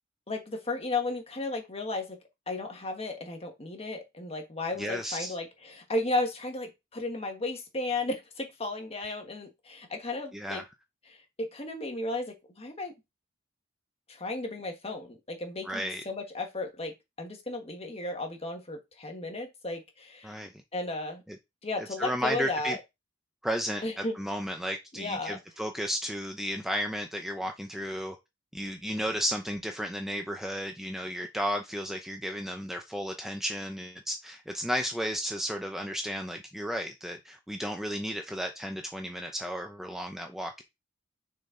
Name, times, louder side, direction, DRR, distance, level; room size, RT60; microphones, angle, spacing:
voice 1, 0.3-2.2 2.5-10.6 11.1-12.9 14.1-20.4 20.7-21.2 21.6-22.8 23.8-24.1 24.9-25.4, left 2 dB, 30° left, 1.4 m, -34 dB
voice 2, 4.8-5.3 10.3-10.6 15.6-16.0 20.2-20.5 21.3-21.4 22.0-22.8 23.4-28.2 28.5-40.6, equal, ahead, 0.5 m, -33 dB
6.4 x 4.2 x 3.7 m
head